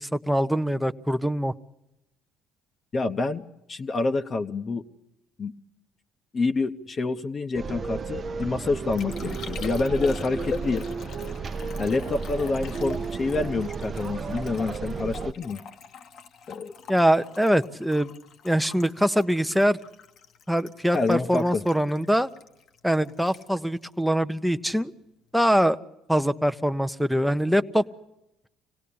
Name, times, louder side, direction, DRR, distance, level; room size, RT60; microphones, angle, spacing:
voice 1, 0.0-1.5 16.9-18.1 18.4-19.8 20.5-22.3 22.8-24.9 25.3-25.8 26.1-27.8, equal, ahead, 8 dB, 0.7 m, -23 dB
voice 2, 2.9-4.8 5.4-5.5 6.3-10.8 11.8-15.6 16.5-16.7 20.9-21.6, left 3 dB, 40° left, 6 dB, 0.9 m, -27 dB
sound 1, 7.5-15.3, right 5 dB, 40° right, 0.8 m, -33 dB
Liquid, 8.2-24.8 25.1-25.6, left 5 dB, 60° left, 1.1 m, -43 dB
25.0 x 17.5 x 8.6 m, 0.90 s
hypercardioid pair, 65°, 0 cm